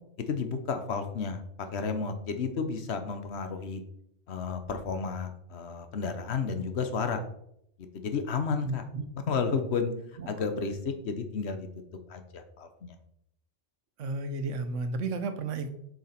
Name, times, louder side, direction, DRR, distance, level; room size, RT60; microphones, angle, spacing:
voice 1, 0.3-1.4 1.7-3.8 4.3-7.2 7.9-8.8 9.3-9.9 10.3-11.7 12.1-12.9, left 5 dB, 60° left, 8 dB, 1.2 m, -32 dB
voice 2, 8.6-9.1 10.2-10.4 14.0-15.7, right 3 dB, 75° right, 8 dB, 1.2 m, -33 dB
7.2 x 5.9 x 4.3 m, 0.74 s
omnidirectional pair, 1.3 m